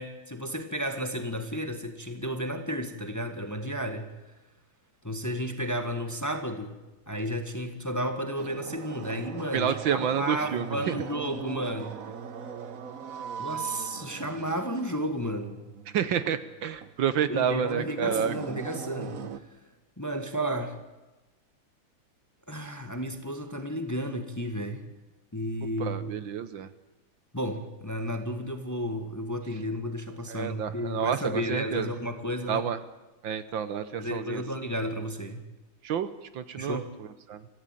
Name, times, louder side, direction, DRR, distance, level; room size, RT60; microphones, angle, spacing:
voice 1, 0.0-4.1 5.0-6.8 7.1-12.0 13.4-15.6 17.3-19.3 20.0-20.7 22.5-24.8 25.3-26.1 27.3-32.6 34.0-35.4 36.5-36.9, equal, 10° left, 7 dB, 1.5 m, -32 dB
sound 1, 8.4-19.4, right 7 dB, 50° right, 1.3 m, -40 dB
voice 2, 9.5-11.0 15.9-18.3 25.8-26.7 30.3-31.9 32.5-32.8 33.2-34.4 35.8-36.8 37.3-37.4, right 8 dB, 70° right, 13 dB, 1.7 m, -29 dB
25.5 x 15.0 x 9.1 m, 1.1 s
omnidirectional pair, 2.3 m